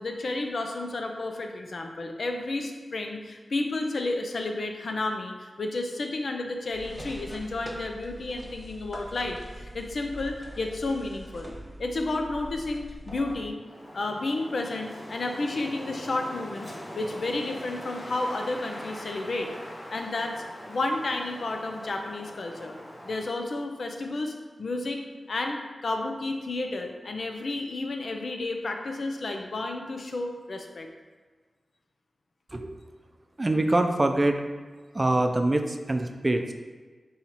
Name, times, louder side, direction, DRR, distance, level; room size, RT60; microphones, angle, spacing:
voice 1, 0.0-11.5 11.8-13.6 13.9-16.7 16.9-19.5 19.9-20.3 20.7-22.8 23.0-25.0 25.3-30.9, left 2 dB, 70° left, 3 dB, 0.5 m, -31 dB
sound 1, 6.7-13.5, right 1 dB, ahead, 0.8 m, -43 dB
Wind, 13.6-23.4, equal, 40° left, 1.1 m, -42 dB
voice 2, 33.4-34.4 34.9-36.5, right 2 dB, 35° right, 5 dB, 0.4 m, -24 dB
5.4 x 3.1 x 2.9 m, 1.4 s
cardioid pair, 40°, 0 cm